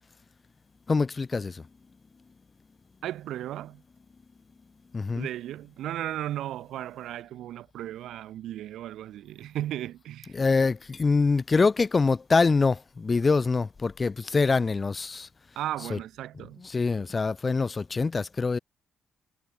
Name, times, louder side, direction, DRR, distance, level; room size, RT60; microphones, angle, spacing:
voice 1, 0.9-1.6 4.9-5.3 10.3-15.3 15.9-16.0 16.6-18.6, left 4 dB, 30° left, 2.2 m, -24 dB
voice 2, 3.0-3.8 5.1-10.4 15.6-16.7, right 13 dB, 80° right, 6.0 m, -35 dB
cardioid pair, 90°, 0 cm